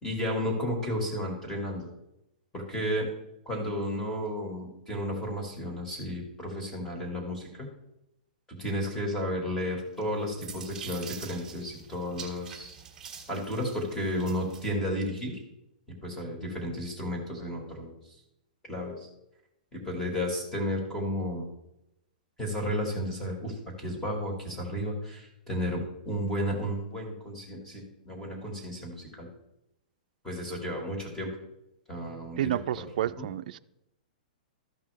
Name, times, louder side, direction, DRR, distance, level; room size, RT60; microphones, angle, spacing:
voice 1, 0.0-1.9 2.5-3.1 3.5-7.7 8.5-12.7 13.3-15.4 16.0-18.0 18.7-19.1 19.7-21.5 22.4-29.3 30.2-31.3 31.9-32.9 33.2-33.3, equal, 10° left, 2.1 m, -33 dB
sound 1, 10.0-14.7, right 7 dB, 10° right, 1.8 m, -45 dB
voice 2, 32.4-33.6, right 12 dB, 60° right, 0.4 m, -30 dB
13.5 x 5.6 x 3.5 m
hypercardioid pair, 155°, 5 cm